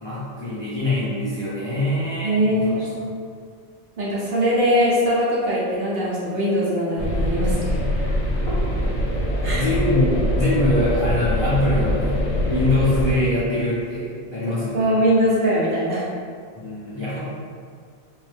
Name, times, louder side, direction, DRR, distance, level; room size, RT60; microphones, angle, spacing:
voice 1, 0.0-3.2 8.5-8.6 9.5-14.9 16.5-17.2, left 1 dB, 30° left, -12 dB, 0.6 m, -24 dB
voice 2, 2.2-2.9 4.0-7.8 9.4-9.6 14.7-16.1, equal, 60° right, -7 dB, 0.7 m, -21 dB
sound 1, 7.0-13.2, left 1 dB, 80° left, 0.9 m, -23 dB
2.6 x 2.0 x 3.2 m, 2.1 s
omnidirectional pair, 1.1 m